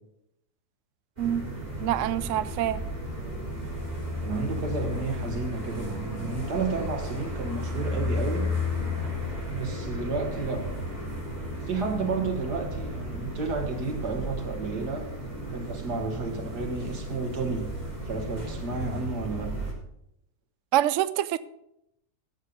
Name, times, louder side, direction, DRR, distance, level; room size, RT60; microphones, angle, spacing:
sound 1, 1.2-19.7, left 1 dB, 25° right, 3.6 m, -34 dB
voice 1, 1.8-2.8 20.7-21.4, right 12 dB, 65° right, 0.8 m, -25 dB
voice 2, 4.2-8.5 9.5-10.7 11.7-15.1 15.5-17.7 18.0-19.5, right 4 dB, 85° right, 2.4 m, -31 dB
14.5 x 7.2 x 5.3 m
omnidirectional pair, 1.7 m